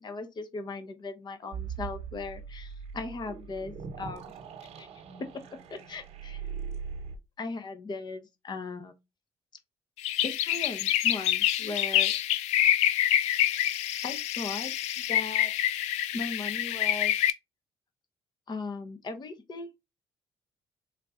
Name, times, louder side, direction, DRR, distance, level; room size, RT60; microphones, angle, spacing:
voice 1, 0.0-4.3 4.8-4.9 5.7-6.4 7.4-8.9 10.2-12.1 13.1-13.2 14.0-14.7 15.1-15.7 16.1-17.2 18.5-19.8, left 3 dB, 40° left, 1.0 m, -38 dB
sound 1, 1.5-7.2, right 6 dB, 65° right, 1.0 m, -40 dB
sound 2, 10.0-17.3, left 12 dB, 75° left, 0.4 m, -26 dB
3.7 x 2.8 x 3.6 m
supercardioid pair, 65°, 11 cm